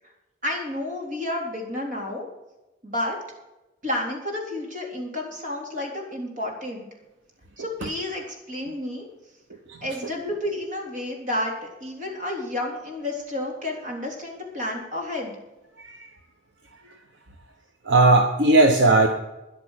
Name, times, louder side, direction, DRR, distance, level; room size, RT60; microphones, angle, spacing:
voice 1, 0.4-2.3 2.8-3.2 3.8-6.9 7.6-9.1 9.8-15.4, left 1 dB, 45° right, 0 dB, 3.6 m, -31 dB
voice 2, 15.8-16.1 16.8-17.0 17.8-19.1, right 2 dB, 70° right, 5 dB, 1.1 m, -18 dB
13.0 x 10.5 x 6.5 m, 1.0 s
head